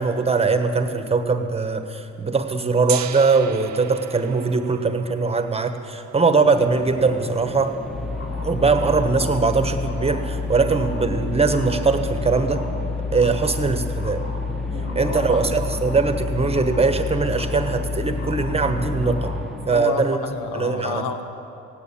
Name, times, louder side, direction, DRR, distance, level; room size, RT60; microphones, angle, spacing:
voice 1, 0.0-7.7 8.4-12.7 13.1-14.2 14.9-20.2 20.5-21.0, right 4 dB, 20° right, 7 dB, 1.2 m, -21 dB
Gong, 2.9-8.8, right 11 dB, 65° right, 0.7 m, -37 dB
sound 1, 6.2-20.1, equal, ahead, 1.0 m, -35 dB
sound 2, 7.9-19.4, left 4 dB, 35° left, 3.5 m, -29 dB
voice 2, 14.7-15.5 19.7-21.2, left 6 dB, 85° left, 7 dB, 1.2 m, -30 dB
16.5 x 9.2 x 8.6 m, 2.7 s
cardioid pair, 90°, 30 cm